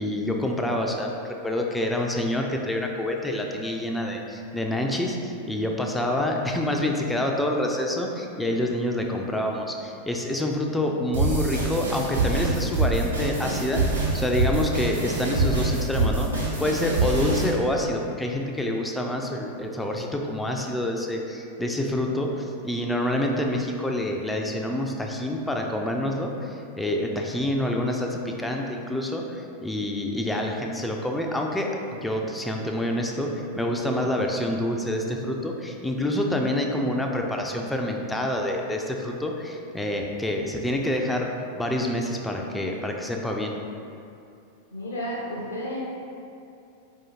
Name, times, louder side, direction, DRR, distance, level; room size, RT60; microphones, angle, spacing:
voice 1, 0.0-41.3 41.6-43.5, left 1 dB, 5° left, 1 dB, 0.4 m, -27 dB
sound 1, 11.1-17.5, right 3 dB, 80° right, 1.0 m, -25 dB
voice 2, 44.7-45.8, equal, 65° left, -5 dB, 0.5 m, -32 dB
4.7 x 2.7 x 2.9 m, 2.6 s
figure-of-eight pair, 90°, 0 cm